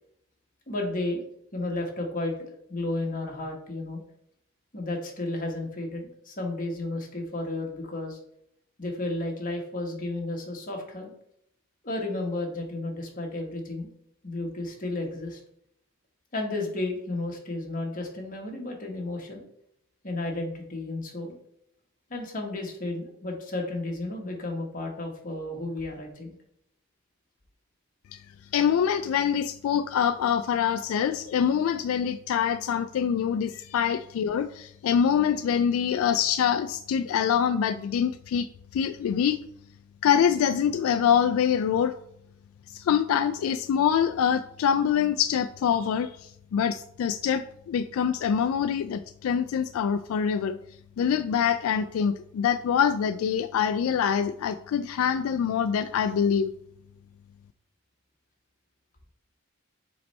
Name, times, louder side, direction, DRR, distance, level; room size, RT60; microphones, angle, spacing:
voice 1, 0.7-1.2 1.5-4.0 4.7-8.2 8.8-11.1 11.8-13.9 14.2-15.4 16.3-19.4 20.0-21.4 22.1-26.3, left 2 dB, 40° left, 0 dB, 1.4 m, -33 dB
voice 2, 28.5-38.5 38.7-39.4 40.0-41.9 42.7-50.6 51.0-56.5, left 8 dB, 85° left, 11 dB, 0.3 m, -25 dB
6.9 x 3.2 x 4.2 m, 0.73 s
head